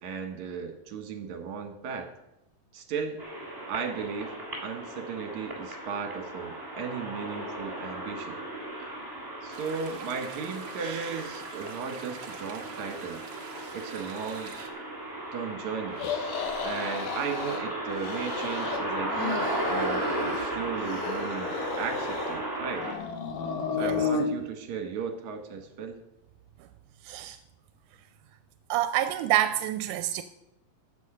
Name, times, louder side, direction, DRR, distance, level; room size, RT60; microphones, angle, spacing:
voice 1, 0.0-2.1 2.7-3.2 3.7-4.4 4.6-8.4 9.4-13.2 13.7-14.5 15.3-16.0 16.6-22.9 23.7-26.0, right 6 dB, 70° right, 5 dB, 2.8 m, -36 dB
sound 1, 3.2-22.9, right 1 dB, 5° right, 2.7 m, -35 dB
sound 2, 9.5-14.7, right 6 dB, 55° right, 1.5 m, -43 dB
sound 3, 16.0-17.6 17.9-18.8 19.0-20.4 20.8-22.4 22.7-24.3, left 5 dB, 85° left, 2.7 m, -33 dB
voice 2, 27.0-27.4 28.7-30.2, right 13 dB, 90° right, 10 dB, 2.1 m, -27 dB
14.0 x 8.6 x 4.9 m, 0.88 s
omnidirectional pair, 3.6 m